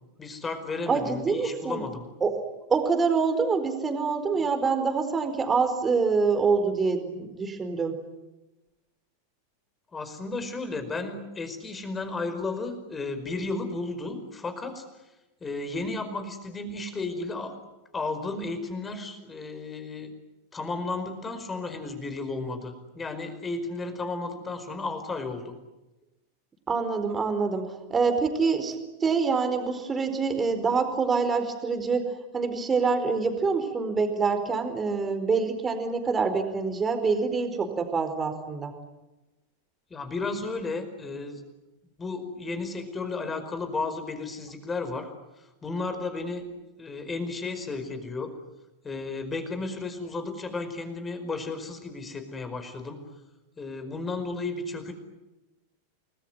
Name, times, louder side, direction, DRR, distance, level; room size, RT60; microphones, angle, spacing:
voice 1, 0.2-2.1 9.9-14.8 15.4-17.6 17.9-20.1 20.5-25.5 39.9-41.4 42.0-46.5 46.8-48.3 48.8-53.0 53.6-54.9, left 3 dB, 15° left, 9 dB, 4.9 m, -33 dB
voice 2, 0.9-1.8 2.2-2.3 2.7-8.0 26.7-38.7, right 4 dB, 15° right, 8 dB, 4.4 m, -26 dB
29.5 x 20.5 x 9.7 m, 1.0 s
figure-of-eight pair, 90°, 0 cm